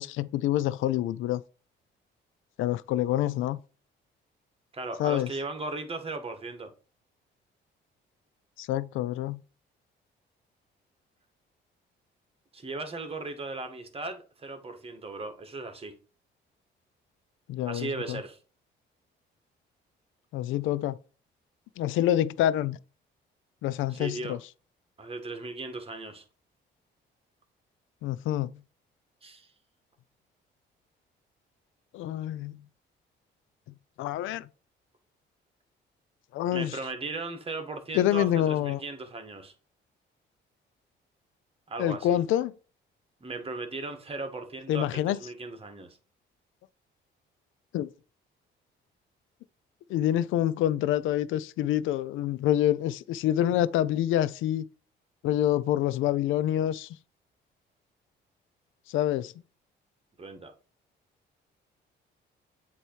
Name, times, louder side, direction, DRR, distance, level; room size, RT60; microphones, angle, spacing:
voice 1, 0.0-1.4 2.6-3.6 5.0-5.3 8.6-9.4 17.5-18.2 20.3-21.0 21.8-22.8 23.6-24.4 28.0-28.6 31.9-32.6 34.0-34.5 36.3-36.8 37.9-38.8 41.8-42.5 44.7-45.2 47.7-47.9 49.9-54.6 55.2-56.9 58.9-59.3, left 12 dB, 85° left, 0.4 m, -27 dB
voice 2, 4.7-6.7 12.5-15.9 17.6-18.4 23.9-24.4 25.0-26.2 29.2-29.5 36.5-39.5 41.7-42.2 43.2-46.0 60.2-60.5, right 3 dB, 30° right, 1.5 m, -37 dB
7.9 x 3.0 x 4.5 m
cardioid pair, 90°, 20 cm